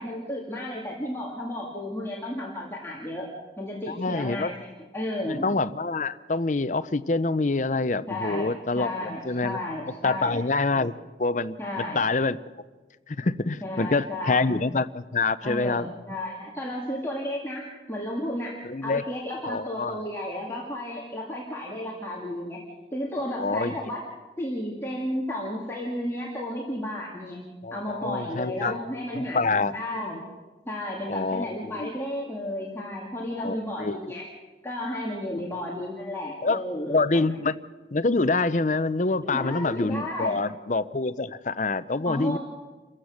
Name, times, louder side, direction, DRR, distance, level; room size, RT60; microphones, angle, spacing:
voice 1, 0.0-3.3 3.6-5.5 8.1-10.9 11.6-12.0 13.6-14.5 15.4-18.6 18.8-22.6 22.9-24.1 24.4-27.4 27.7-30.2 30.7-34.3 34.6-37.5 39.2-40.4 42.1-42.4, left 1 dB, 15° left, -4 dB, 2.3 m, -33 dB
voice 2, 3.9-4.5 5.3-9.6 10.0-10.9 11.2-12.4 13.1-15.9 18.6-19.0 19.5-19.9 23.4-23.8 27.6-28.8 29.1-29.8 31.1-31.9 33.4-34.0 36.4-36.6 36.9-37.6 37.9-42.4, left 3 dB, 40° left, 14 dB, 0.6 m, -26 dB
28.5 x 15.5 x 6.5 m, 1.3 s
head